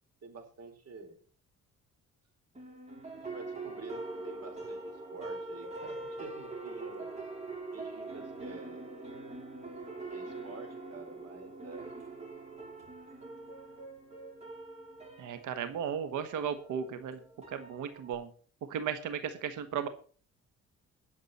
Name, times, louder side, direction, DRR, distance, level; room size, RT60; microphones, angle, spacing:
voice 1, 0.2-1.2 3.1-7.1 7.7-8.9 10.1-11.9, right 4 dB, 55° right, 5 dB, 4.4 m, -48 dB
sound 1, 2.5-18.1, right 2 dB, 20° right, 5.8 m, -43 dB
voice 2, 15.2-17.2 17.5-18.3 18.7-19.9, right 8 dB, 80° right, 10 dB, 1.4 m, -35 dB
19.5 x 7.4 x 4.2 m, 0.41 s
cardioid pair, 90°, 30 cm